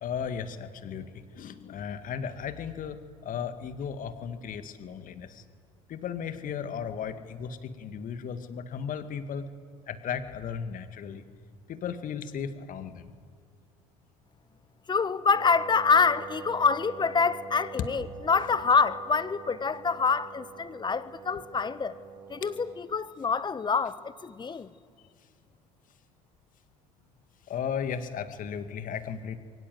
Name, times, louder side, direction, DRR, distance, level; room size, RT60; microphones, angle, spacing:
voice 1, 0.0-5.4 5.9-9.5 9.9-11.2 11.7-13.1 27.5-29.4, left 7 dB, 45° left, 9 dB, 2.1 m, -35 dB
voice 2, 14.9-21.9 22.3-24.7, left 5 dB, 25° left, 15 dB, 1.3 m, -26 dB
Wind instrument woodwind instrument, 15.3-22.9, right 6 dB, 55° right, 5.9 m, -44 dB
29.5 x 23.5 x 8.0 m, 2.1 s
figure-of-eight pair, 65°, 19 cm